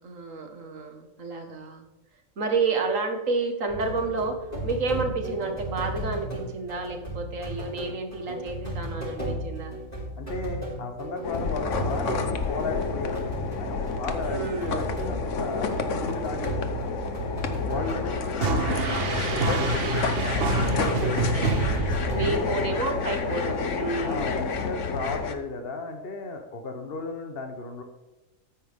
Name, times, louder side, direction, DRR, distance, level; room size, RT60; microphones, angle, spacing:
voice 1, 0.0-1.9 2.4-9.7 14.3-14.8 16.0-16.6 17.7-18.8 21.3-21.6 22.1-24.3, right 3 dB, 75° right, 5 dB, 2.0 m, -30 dB
sound 1, 3.7-22.3, right 1 dB, 30° left, 4.9 m, -35 dB
voice 2, 10.2-16.9 17.6-21.3 22.2-22.5 24.0-27.8, left 3 dB, 50° left, 5 dB, 1.2 m, -35 dB
sound 2, 11.2-25.3, left 5 dB, 65° left, 1.3 m, -30 dB
sound 3, 18.4-22.7, right 3 dB, 50° right, 1.2 m, -26 dB
13.5 x 9.9 x 3.6 m, 1.1 s
omnidirectional pair, 1.4 m